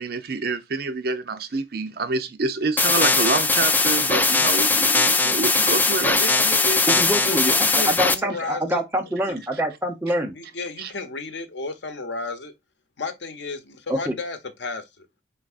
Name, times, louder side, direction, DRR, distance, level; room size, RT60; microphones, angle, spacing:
voice 1, 0.0-6.2 10.8-10.9, right 3 dB, 60° right, 0.6 m, -27 dB
sound 1, 2.8-8.1, left 3 dB, 10° left, 0.3 m, -20 dB
voice 2, 6.2-8.8 9.3-9.4 10.4-12.5 13.0-15.1, left 3 dB, 85° left, 0.8 m, -33 dB
voice 3, 6.9-10.4 13.9-14.2, equal, 10° right, 0.7 m, -25 dB
4.6 x 3.8 x 2.4 m
head